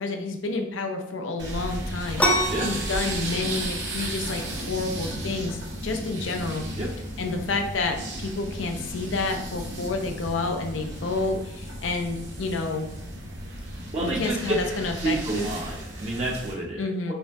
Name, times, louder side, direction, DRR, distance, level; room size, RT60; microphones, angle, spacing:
voice 1, 0.0-6.7 7.2-12.9 14.0-15.5 16.8-17.1, left 3 dB, 85° left, 4 dB, 0.6 m, -29 dB
sound 1, 1.4-16.5, right 1 dB, 65° right, 0.9 m, -34 dB
sound 2, 2.2-9.6, equal, 10° left, 0.4 m, -31 dB
voice 2, 13.9-14.4 15.0-17.1, right 2 dB, 35° right, -3 dB, 0.6 m, -29 dB
5.2 x 2.7 x 2.3 m, 0.86 s
head